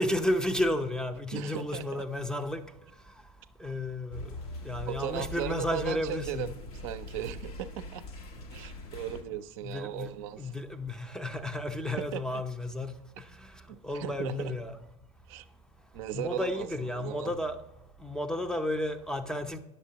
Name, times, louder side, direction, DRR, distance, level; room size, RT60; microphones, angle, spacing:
voice 1, 0.0-2.6 3.6-4.3 4.6-6.5 9.6-10.1 10.4-13.5 13.8-14.8 16.1-17.6 18.0-19.6, left 1 dB, 5° left, 0.5 m, -32 dB
voice 2, 1.3-2.0 4.9-8.0 8.5-10.6 12.0-12.4 13.7-14.5 15.3-15.5 15.9-17.3, right 12 dB, 60° right, 0.5 m, -38 dB
sound 1, 4.1-9.2, left 2 dB, 75° left, 1.0 m, -42 dB
9.5 x 6.6 x 2.8 m
hypercardioid pair, 80°, 19 cm